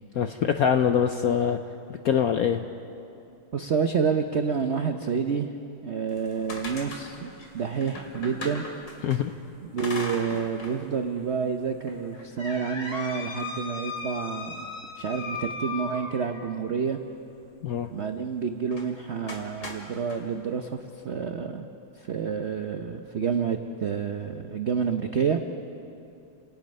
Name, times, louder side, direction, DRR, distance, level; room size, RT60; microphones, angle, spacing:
voice 1, 0.1-1.6 2.0-2.6 9.0-9.3 17.6-17.9, left 8 dB, 80° left, 7 dB, 0.8 m, -23 dB
voice 2, 3.5-5.5 5.8-7.3 7.5-8.7 9.7-17.0 17.9-21.7 21.9-25.4, right 6 dB, 90° right, 6 dB, 0.6 m, -29 dB
sound 1, 6.1-9.2 9.8-10.8 11.2-11.3 11.9-16.5 18.7-18.9 19.3-20.2, left 3 dB, 55° left, 3.0 m, -37 dB
29.5 x 18.0 x 5.4 m, 2.7 s
omnidirectional pair, 2.3 m